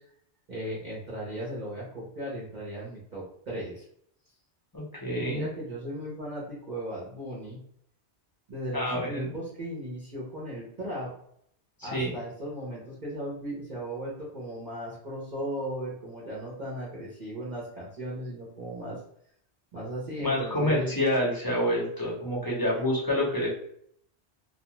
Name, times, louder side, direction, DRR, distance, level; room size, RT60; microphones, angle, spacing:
voice 1, 0.5-3.8 5.2-7.7 8.5-11.1 11.8-19.0 19.7-20.9 22.7-22.8, right 1 dB, 45° right, -6 dB, 0.8 m, -36 dB
voice 2, 4.7-5.5 8.7-9.4 11.8-12.2 20.2-23.5, left 1 dB, 20° left, -5 dB, 0.7 m, -28 dB
2.4 x 2.2 x 3.0 m, 0.67 s
omnidirectional pair, 1.1 m